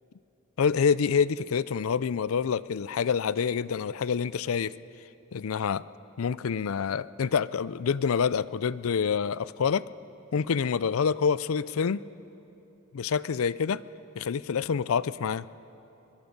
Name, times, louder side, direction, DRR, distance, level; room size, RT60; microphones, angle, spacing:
voice 1, 0.6-4.7 5.3-5.8 6.2-9.8 10.3-12.0 12.9-13.8 14.2-15.5, left 6 dB, 90° left, 18 dB, 0.4 m, -27 dB
22.5 x 22.0 x 5.3 m, 3.0 s
head